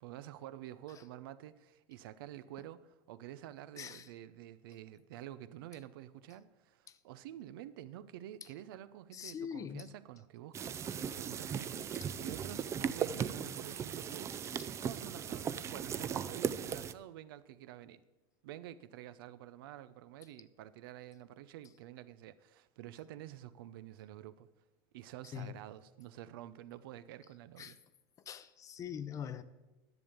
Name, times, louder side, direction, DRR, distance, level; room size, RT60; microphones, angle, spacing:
voice 1, 0.0-10.6 11.2-14.4 14.8-18.0 18.4-24.5 24.9-27.8, right 12 dB, 75° right, 0.7 m, -49 dB
voice 2, 3.8-4.1 6.9-7.0 9.1-9.9 12.0-12.1 14.6-14.7 25.3-25.5 27.6-27.7 28.3-29.4, left 8 dB, 30° left, 0.6 m, -43 dB
sound 1, 10.5-16.9, right 8 dB, 25° right, 0.5 m, -38 dB
11.0 x 7.2 x 8.2 m
supercardioid pair, 135°, 12 cm